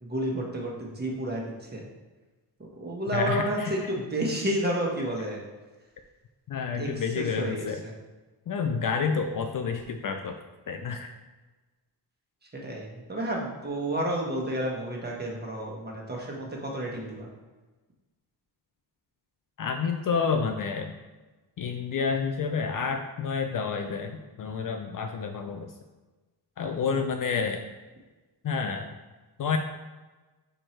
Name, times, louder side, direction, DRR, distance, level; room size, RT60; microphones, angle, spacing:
voice 1, 0.0-1.4 1.7-1.8 2.6-5.4 6.7-6.9 7.2-7.9 12.6-17.3 26.6-27.0, right 1 dB, 20° right, -1 dB, 1.3 m, -31 dB
voice 2, 3.1-3.9 6.5-7.8 8.5-10.3 10.7-11.1 19.6-20.9 21.6-25.7 26.6-27.6 28.4-28.9 29.4-29.6, left 5 dB, 50° left, 5 dB, 0.5 m, -29 dB
4.7 x 4.5 x 4.4 m, 1.2 s
cardioid pair, 110°, 44 cm